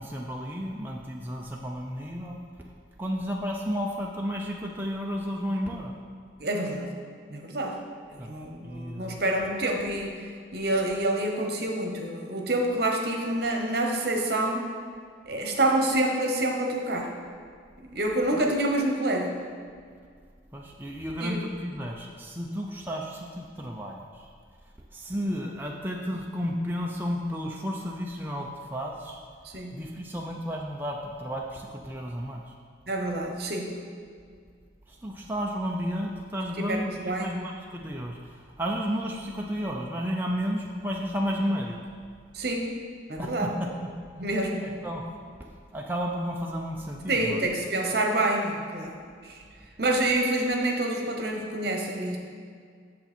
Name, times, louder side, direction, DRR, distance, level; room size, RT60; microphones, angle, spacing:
voice 1, 0.0-2.4 3.0-5.9 8.2-8.3 8.6-9.2 20.5-24.0 24.9-29.2 29.7-32.4 35.0-36.9 37.2-38.2 38.6-41.8 43.2-43.3 43.6-43.7 44.6-45.0 45.7-47.4, equal, 10° right, -1 dB, 0.5 m, -32 dB
voice 2, 6.4-6.9 7.3-7.8 8.1-10.2 10.5-14.6 15.3-17.1 17.8-19.4 21.2-21.4 29.4-29.9 32.9-33.8 36.6-37.4 42.3-42.7 43.1-43.5 44.2-44.8 47.1-49.4 49.8-52.2, right 1 dB, 60° right, 2 dB, 1.1 m, -27 dB
8.5 x 6.7 x 4.4 m, 2.1 s
head